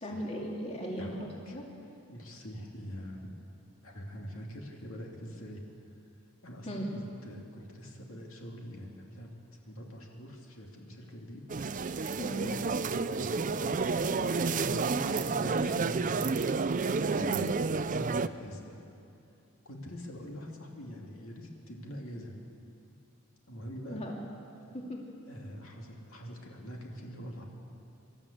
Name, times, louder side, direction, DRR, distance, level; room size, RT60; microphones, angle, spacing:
voice 1, 0.0-1.6 6.6-6.9 12.2-12.5 17.1-17.4 23.8-24.2 24.7-25.0, equal, 30° left, -1 dB, 2.5 m, -37 dB
voice 2, 1.0-1.6 2.1-3.3 3.8-5.6 6.4-9.3 9.6-11.4 13.0-16.4 17.0-17.5 17.8-19.0 19.6-22.4 23.5-24.0 25.3-27.5, equal, 65° left, 0 dB, 2.7 m, -44 dB
sound 1, 11.5-18.3, right 4 dB, 35° right, 0.5 m, -30 dB
25.0 x 13.0 x 8.6 m, 2.7 s
head